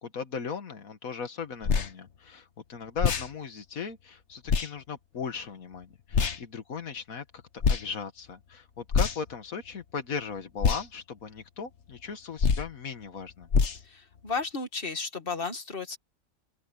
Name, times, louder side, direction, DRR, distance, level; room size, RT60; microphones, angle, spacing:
voice 1, 0.0-7.3 7.7-13.5, left 6 dB, 85° left, 2.0 m, -37 dB
sound 1, 1.6-1.9 3.0-3.3 4.5-4.7 6.1-6.4 7.6-7.9 8.9-9.3 10.6-10.8 12.4-12.7 13.5-13.8, left 5 dB, 55° left, 1.5 m, -24 dB
voice 2, 13.8-16.0, left 4 dB, 40° left, 2.5 m, -33 dB
open air
omnidirectional pair, 1.4 m